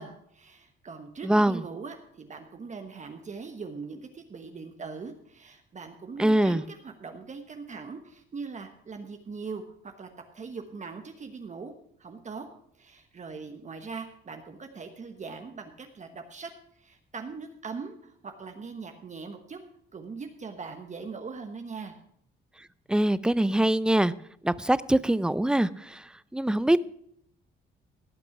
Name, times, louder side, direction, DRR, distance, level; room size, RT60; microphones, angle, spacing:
voice 1, 0.0-10.1 10.3-11.7 12.0-12.5 12.8-19.6 19.9-21.9, right 4 dB, 35° right, 6 dB, 1.1 m, -41 dB
voice 2, 1.2-1.6 6.2-6.6 22.9-24.1 24.4-26.0 26.3-26.8, right 1 dB, 5° right, 18 dB, 0.4 m, -23 dB
16.5 x 6.0 x 5.9 m, 0.69 s
cardioid pair, 90°, 20 cm